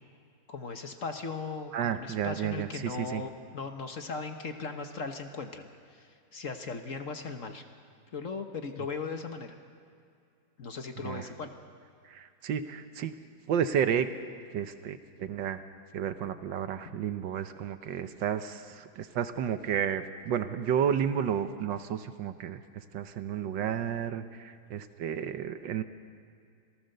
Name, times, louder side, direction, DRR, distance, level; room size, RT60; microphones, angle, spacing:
voice 1, 0.5-7.6 8.1-9.5 10.6-11.5, left 4 dB, 45° left, 6 dB, 1.3 m, -38 dB
voice 2, 1.7-3.2 11.0-11.3 12.1-13.2 13.5-14.1 14.5-15.6 15.9-22.6 22.9-25.8, right 8 dB, 75° right, 10 dB, 1.6 m, -31 dB
26.5 x 18.0 x 6.7 m, 2.4 s
omnidirectional pair, 2.1 m